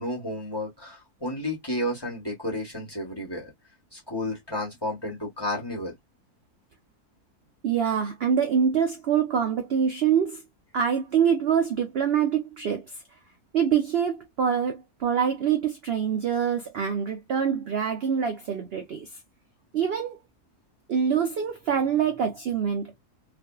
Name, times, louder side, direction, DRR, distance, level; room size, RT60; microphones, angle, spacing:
voice 1, 0.0-3.5 3.9-5.9, left 1 dB, 20° left, 1.0 m, -32 dB
voice 2, 7.6-10.4 10.7-12.8 13.5-19.1 19.7-20.2 20.9-22.9, right 7 dB, 70° right, 0.6 m, -25 dB
2.6 x 2.5 x 2.2 m
omnidirectional pair, 1.6 m